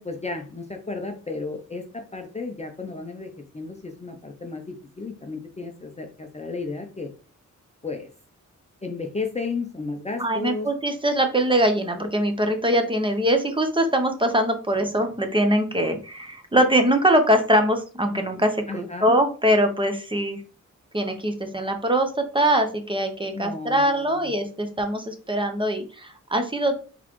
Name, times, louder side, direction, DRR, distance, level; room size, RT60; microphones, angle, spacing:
voice 1, 0.0-7.1 7.8-8.1 8.8-10.7 18.7-19.2 23.3-24.3, left 3 dB, 20° left, 4 dB, 0.5 m, -33 dB
voice 2, 10.2-20.4 20.9-26.8, right 1 dB, 15° right, 5 dB, 0.7 m, -22 dB
4.0 x 3.7 x 3.0 m, 0.37 s
wide cardioid pair, 115°, 30 cm